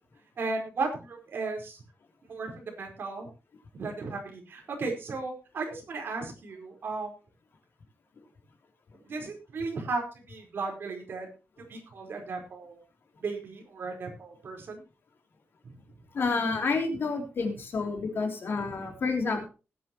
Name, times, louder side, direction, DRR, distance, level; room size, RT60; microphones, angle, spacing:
voice 1, 0.4-1.8 2.3-3.3 3.7-7.1 9.0-11.3 11.6-12.8 13.2-14.8 15.6-15.7, right 3 dB, 55° right, 2 dB, 4.7 m, -35 dB
voice 2, 16.1-19.5, left 4 dB, 55° left, 4 dB, 3.4 m, -29 dB
20.0 x 9.4 x 3.1 m, 0.32 s
wide cardioid pair, 170°, 4 cm